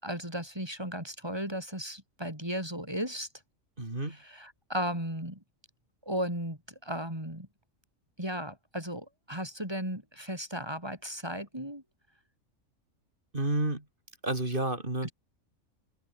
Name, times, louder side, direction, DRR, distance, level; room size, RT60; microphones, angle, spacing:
voice 1, 0.0-3.3 4.1-5.4 6.1-7.5 8.2-11.8 15.0-15.1, equal, 20° right, 5.8 m, -35 dB
voice 2, 3.8-4.2 13.3-13.8 14.2-15.1, right 2 dB, 40° right, 4.2 m, -30 dB
open air
omnidirectional pair, 1.3 m